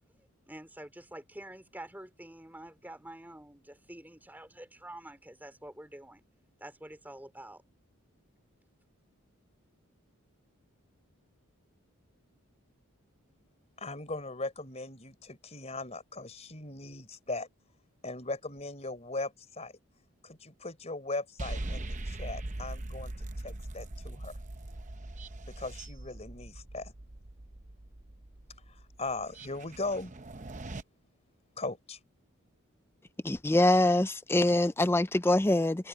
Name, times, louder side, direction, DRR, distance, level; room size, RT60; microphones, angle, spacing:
voice 1, 0.2-6.2 6.6-7.6, right 1 dB, 10° right, 3.2 m, -47 dB
voice 2, 13.8-17.5 18.0-19.7 20.2-24.4 25.5-26.9 28.7-30.1 31.6-32.0, left 2 dB, 30° left, 4.2 m, -39 dB
sound 1, 21.4-30.8, right 2 dB, 35° right, 0.8 m, -41 dB
voice 3, 33.2-35.9, left 1 dB, 10° left, 0.4 m, -24 dB
head